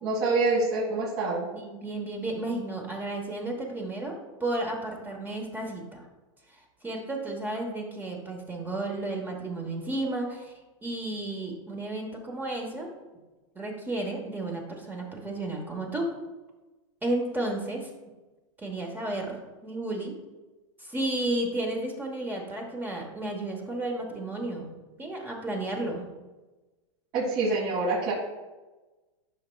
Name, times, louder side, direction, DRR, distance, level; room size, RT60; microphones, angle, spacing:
voice 1, 0.0-1.5 27.1-28.1, right 3 dB, 45° right, -6 dB, 2.0 m, -26 dB
voice 2, 1.5-6.0 6.8-10.5 10.8-12.9 13.5-16.1 17.0-17.9 18.6-19.4 19.6-20.1 20.8-24.7 25.0-26.0, right 2 dB, 10° right, 1 dB, 1.1 m, -32 dB
11.5 x 5.7 x 2.3 m, 1.2 s
supercardioid pair, 135°, 16 cm